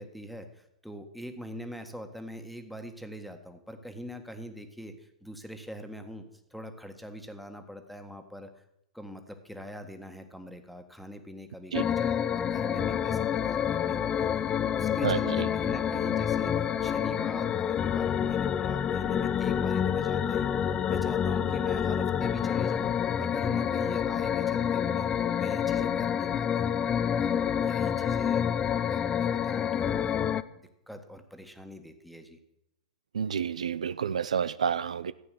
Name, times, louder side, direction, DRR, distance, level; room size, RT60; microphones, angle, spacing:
voice 1, 0.0-8.5 8.9-22.9 23.2-26.7 27.1-28.4 28.8-30.2 30.9-32.4, equal, ahead, 6 dB, 1.7 m, -43 dB
sound 1, 11.7-30.4, left 8 dB, 25° left, 0.6 m, -28 dB
voice 2, 15.0-15.5 33.1-35.1, right 7 dB, 75° right, 16 dB, 0.5 m, -29 dB
15.0 x 8.8 x 6.5 m, 0.82 s
hypercardioid pair, 105°, 4 cm